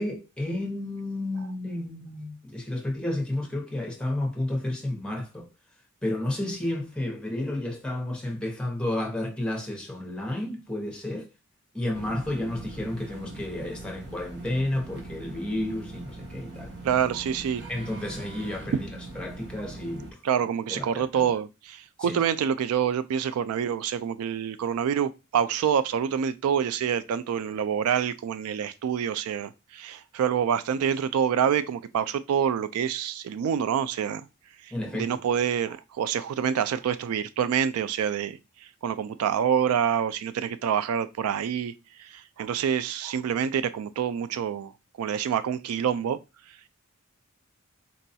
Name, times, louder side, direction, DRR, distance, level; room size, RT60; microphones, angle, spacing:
voice 1, 0.0-5.5 6.0-11.3 11.7-16.7 17.7-20.2 20.7-21.3 22.0-22.2 34.7-35.2, left 1 dB, 5° left, 0.8 m, -31 dB
sound 1, 11.9-20.1, right 3 dB, 55° right, 0.9 m, -42 dB
voice 2, 16.8-17.7 20.2-34.2 34.9-38.4 38.8-41.7 42.0-44.7 45.0-46.2, right 8 dB, 80° right, 0.3 m, -27 dB
4.0 x 2.3 x 2.6 m
head